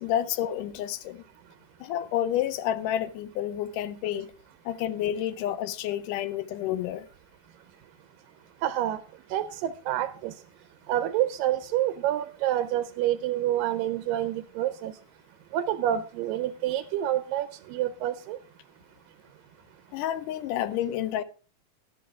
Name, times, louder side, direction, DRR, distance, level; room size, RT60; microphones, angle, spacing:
voice 1, 0.0-1.2 1.8-4.3 4.7-7.1 19.9-21.2, left 11 dB, 80° left, 2.2 m, -29 dB
voice 2, 8.6-9.0 9.3-10.3 10.9-14.9 15.5-18.4, right 12 dB, 85° right, 2.4 m, -28 dB
12.0 x 11.5 x 3.5 m
omnidirectional pair, 3.9 m